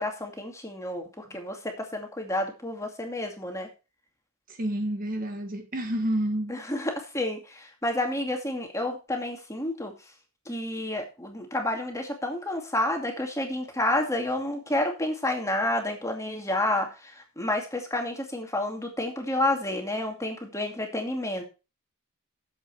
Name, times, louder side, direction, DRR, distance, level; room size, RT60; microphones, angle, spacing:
voice 1, 0.0-3.7 6.5-9.9 10.5-21.4, left 1 dB, 15° left, 2.3 m, -30 dB
voice 2, 4.5-6.5, right 1 dB, 40° right, 1.3 m, -29 dB
11.0 x 7.7 x 4.5 m
head